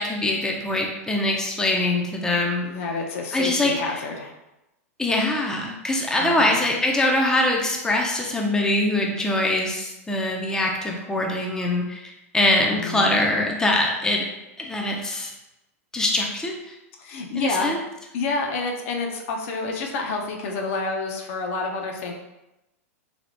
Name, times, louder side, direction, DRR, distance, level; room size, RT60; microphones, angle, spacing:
voice 1, 0.0-2.7 3.3-3.7 5.0-14.2 14.6-15.3 15.9-16.5 17.4-17.8, left 1 dB, 5° left, 0 dB, 0.5 m, -23 dB
voice 2, 2.6-4.3 6.2-6.6 12.6-13.1 17.0-17.7 18.1-22.1, left 3 dB, 60° left, 1 dB, 0.6 m, -28 dB
3.4 x 2.7 x 2.5 m, 0.94 s
hypercardioid pair, 115°, 8 cm